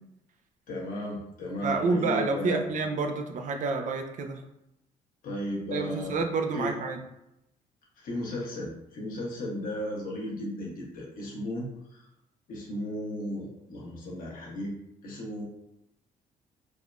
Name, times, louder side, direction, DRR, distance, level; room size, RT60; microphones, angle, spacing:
voice 1, 0.7-2.6 5.2-6.2 6.5-6.7 8.0-12.1 12.5-14.7 15.0-15.4, left 1 dB, 65° left, -3 dB, 1.0 m, -35 dB
voice 2, 1.6-4.4 5.7-7.0, right 3 dB, 55° right, 5 dB, 0.4 m, -28 dB
3.5 x 2.1 x 2.4 m, 0.83 s
supercardioid pair, 75°, 15 cm